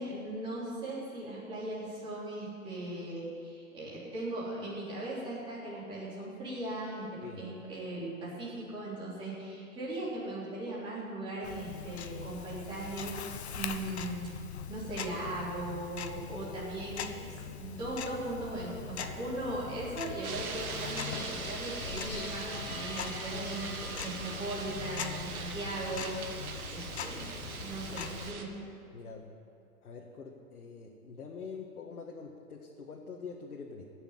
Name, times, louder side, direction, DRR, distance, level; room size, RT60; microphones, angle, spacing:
voice 1, 0.0-13.2 13.5-14.3 14.7-26.4 26.7-28.6, right 1 dB, 10° right, -8 dB, 3.6 m, -38 dB
Tick-tock, 11.4-28.3, left 7 dB, 45° left, 0.9 m, -42 dB
sound 1, 20.2-28.4, right 5 dB, 75° right, 1.8 m, -41 dB
sound 2, 21.0-28.4, left 3 dB, 30° left, 4.4 m, -49 dB
voice 2, 28.9-29.3 29.8-33.8, left 5 dB, 75° left, -1 dB, 1.8 m, -45 dB
16.5 x 6.9 x 9.5 m, 2.4 s
hypercardioid pair, 160°, 44 cm